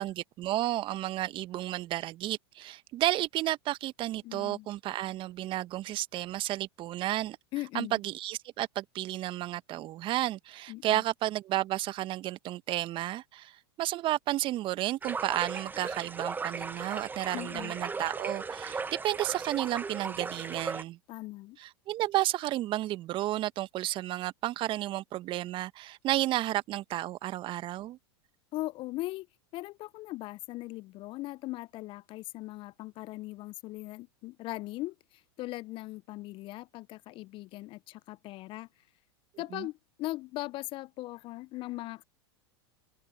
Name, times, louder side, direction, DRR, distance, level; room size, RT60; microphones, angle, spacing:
voice 1, 0.0-7.4 7.7-21.0 21.6-28.0 39.5-39.7, right 15 dB, 40° right, 1.5 m, -32 dB
voice 2, 4.2-4.7 7.5-8.0 10.7-11.0 17.3-17.7 21.1-21.6 28.5-29.3 29.5-38.7 39.4-42.0, left 18 dB, 40° left, 0.7 m, -39 dB
sound 1, 15.0-20.8, right 4 dB, 15° right, 1.3 m, -37 dB
open air
figure-of-eight pair, 90°, 14 cm